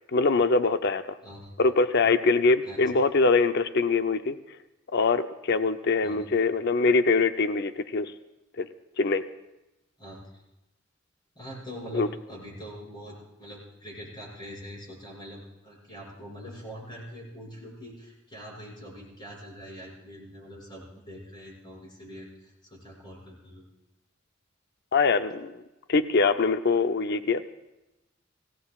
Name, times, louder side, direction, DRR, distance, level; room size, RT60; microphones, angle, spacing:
voice 1, 0.0-1.2 1.6-4.4 4.9-8.1 8.6-8.7 9.0-9.2 11.9-12.1 24.9-25.6 25.9-27.5, left 4 dB, 60° left, 10 dB, 0.6 m, -23 dB
voice 2, 1.2-1.5 2.6-2.8 6.0-6.3 10.0-10.4 11.3-23.6, equal, 25° left, -3 dB, 6.3 m, -43 dB
25.5 x 17.0 x 2.4 m, 0.97 s
head